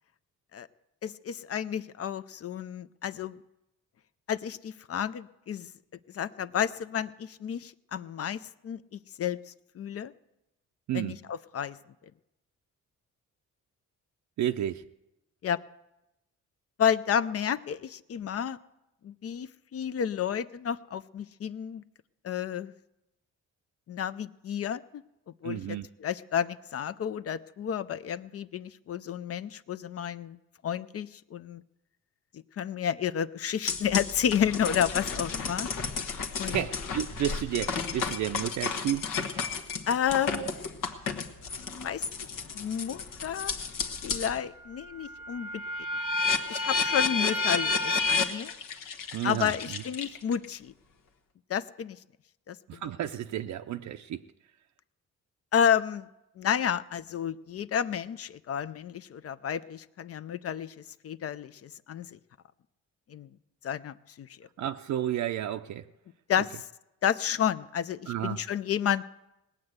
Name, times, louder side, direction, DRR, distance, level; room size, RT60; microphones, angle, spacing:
voice 1, 1.0-3.4 4.3-5.7 6.1-10.1 10.9-11.8 15.4-15.6 16.8-18.6 19.0-21.8 22.2-22.7 23.9-25.0 25.4-31.6 32.6-35.7 36.4-36.7 39.9-40.5 41.8-42.1 42.5-43.5 44.0-45.6 46.5-48.5 49.2-50.7 51.5-52.0 52.5-52.8 55.5-56.1 56.4-60.7 61.0-62.2 63.1-63.3 63.6-64.5 66.3-66.7 67.0-69.1, left 8 dB, 50° left, 15 dB, 0.5 m, -31 dB
voice 2, 14.4-14.8 25.4-25.9 36.4-39.0 40.3-40.5 49.1-49.5 52.7-54.2 64.6-65.8 68.1-68.4, right 11 dB, 65° right, 6 dB, 0.5 m, -31 dB
sound 1, 33.7-44.4 44.8-50.4, left 4 dB, 85° left, 1.4 m, -32 dB
19.0 x 8.7 x 7.9 m, 0.94 s
cardioid pair, 125°, 32 cm